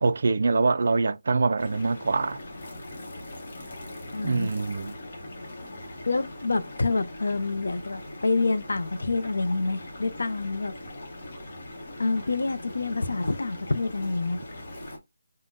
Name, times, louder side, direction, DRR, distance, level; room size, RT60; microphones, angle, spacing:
voice 1, 0.0-2.4 4.2-4.9, right 3 dB, 50° right, 0.3 m, -24 dB
sound 1, 1.6-15.0, left 1 dB, 40° left, 0.8 m, -41 dB
voice 2, 4.1-4.5 6.1-10.7 12.0-14.4, left 3 dB, 75° left, 0.5 m, -27 dB
3.6 x 2.1 x 2.6 m
hypercardioid pair, 175°, 0 cm